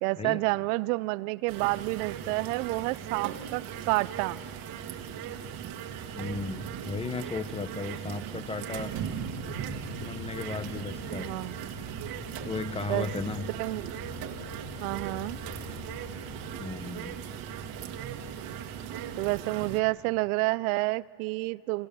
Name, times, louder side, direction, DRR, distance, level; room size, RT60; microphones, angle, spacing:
voice 1, 0.0-4.4 11.2-11.6 12.9-13.1 13.5-14.0 14.8-15.4 19.2-21.9, right 23 dB, 70° right, 0.5 m, -29 dB
sound 1, 1.5-19.8, right 8 dB, 50° right, 1.8 m, -38 dB
voice 2, 6.1-8.9 9.9-11.3 12.4-13.5 16.6-17.2, left 4 dB, 15° left, 0.8 m, -35 dB
sound 2, 9.1-16.6, left 5 dB, 65° left, 7.4 m, -46 dB
29.5 x 24.0 x 7.0 m
supercardioid pair, 135°, 45 cm